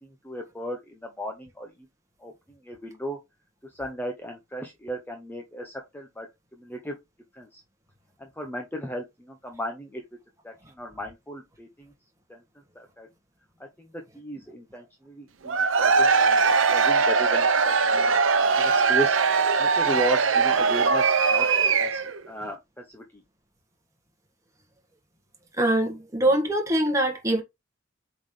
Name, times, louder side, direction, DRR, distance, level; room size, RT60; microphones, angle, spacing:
voice 1, 0.0-1.7 2.2-3.2 3.7-6.3 6.5-7.0 7.3-7.6 8.2-10.0 10.4-11.9 12.3-12.4 12.7-13.1 13.6-18.1 18.6-19.2 19.6-21.5 21.8-23.2, right 1 dB, 10° left, 0.8 m, -35 dB
Cheering / Crowd, 15.4-22.2, right 5 dB, 75° right, 0.8 m, -21 dB
voice 2, 25.6-27.4, right 1 dB, 15° right, 1.7 m, -23 dB
7.8 x 3.9 x 3.2 m
head